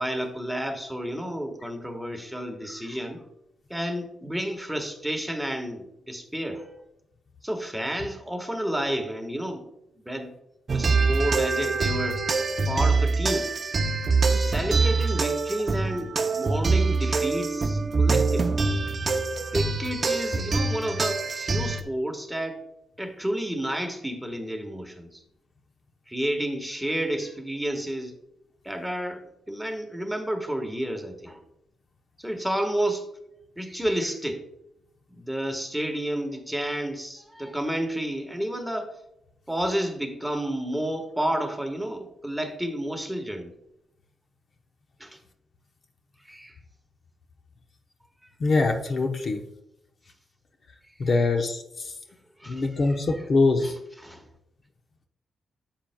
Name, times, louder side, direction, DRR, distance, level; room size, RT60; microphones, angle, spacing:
voice 1, 0.0-3.2 3.7-6.8 7.4-9.7 10.0-10.3 10.7-12.2 12.7-13.5 14.3-18.6 19.5-22.6 23.0-25.2 26.1-28.2 28.6-31.4 32.2-33.1 33.6-34.4 35.1-38.9 39.5-43.5 45.0-45.2 46.3-46.5 52.4-53.0 53.6-53.7 54.0-54.2, right 1 dB, 5° right, 5 dB, 1.3 m, -30 dB
sound 1, 10.7-21.8, right 4 dB, 45° right, 0.6 m, -24 dB
voice 2, 48.4-49.4 51.0-51.9 52.5-53.7, left 3 dB, 50° left, 5 dB, 0.8 m, -23 dB
10.0 x 7.5 x 2.2 m, 0.81 s
cardioid pair, 80°, 0 cm